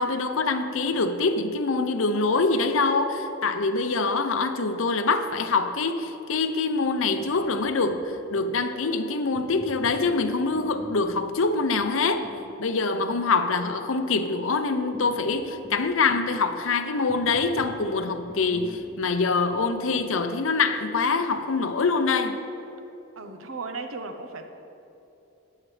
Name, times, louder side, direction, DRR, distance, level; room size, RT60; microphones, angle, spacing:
voice 1, 0.0-12.3 12.6-22.4, left 4 dB, 75° left, 9 dB, 0.7 m, -25 dB
sound 1, 7.2-8.6 9.3-12.5 14.9-16.4 17.1-20.3, equal, 5° right, 0.9 m, -46 dB
voice 2, 23.2-24.5, right 3 dB, 80° right, 6 dB, 0.9 m, -36 dB
14.5 x 9.8 x 3.3 m, 3.0 s
head